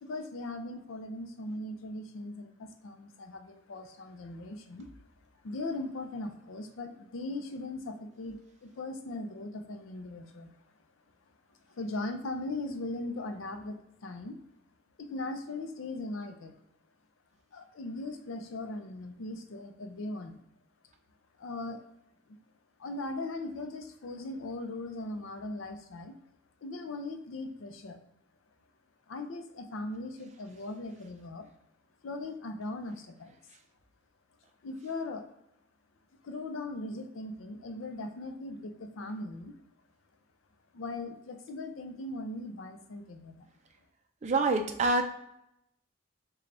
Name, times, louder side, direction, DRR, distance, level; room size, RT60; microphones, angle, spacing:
voice 1, 0.0-4.9 5.4-10.5 11.7-14.4 15.0-16.5 17.5-20.4 21.4-21.8 22.8-26.1 26.6-28.0 29.1-31.5 32.0-33.3 34.6-35.3 36.2-39.5 40.7-43.5, left 2 dB, 75° left, 7 dB, 0.5 m, -39 dB
voice 2, 44.2-45.0, right 3 dB, 35° right, 5 dB, 0.4 m, -26 dB
3.3 x 2.2 x 3.8 m, 0.81 s
head